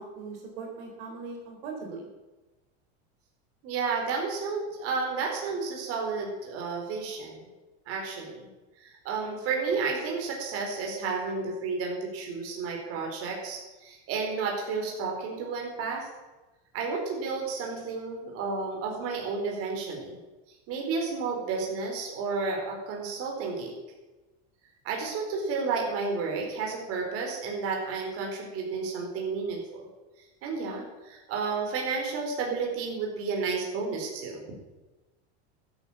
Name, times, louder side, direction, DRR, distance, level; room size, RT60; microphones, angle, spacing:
voice 1, 0.0-2.1, right 4 dB, 65° right, 0 dB, 4.2 m, -40 dB
voice 2, 3.6-7.4 7.9-8.5 8.8-16.1 16.7-20.2 20.7-23.7 24.8-29.8 30.4-34.4, right 4 dB, 45° right, 0 dB, 4.4 m, -31 dB
15.0 x 9.9 x 7.4 m, 1.1 s
supercardioid pair, 145°, 32 cm